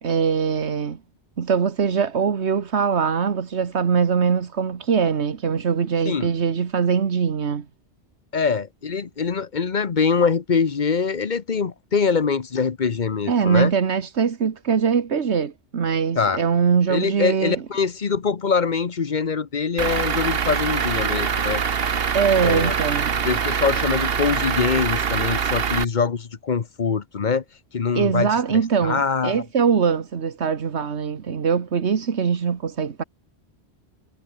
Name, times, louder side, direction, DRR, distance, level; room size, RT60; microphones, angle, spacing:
voice 1, 0.0-1.0 1.4-7.6 13.3-17.6 22.1-23.2 27.9-33.0, right 6 dB, 85° right, 1.6 m, -22 dB
voice 2, 8.3-13.7 16.2-16.4 16.9-21.6 22.4-22.7 23.2-27.4 27.7-28.3 28.8-29.4, left 5 dB, 45° left, 1.1 m, -23 dB
Truck / Idling, 19.8-25.8, right 7 dB, 65° right, 1.3 m, -24 dB
omnidirectional pair, 1.1 m